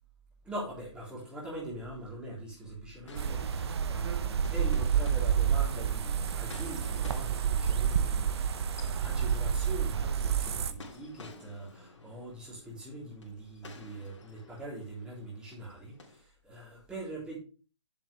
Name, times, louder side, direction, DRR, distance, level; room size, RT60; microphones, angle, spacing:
voice 1, 0.4-17.4, right 1 dB, 5° right, -6 dB, 3.6 m, -43 dB
sound 1, 3.1-16.2, left 3 dB, 75° left, 3.0 m, -53 dB
sound 2, 3.2-10.7, right 7 dB, 60° right, 0.8 m, -29 dB
7.5 x 7.3 x 3.4 m, 0.36 s
hypercardioid pair, 150°, 16 cm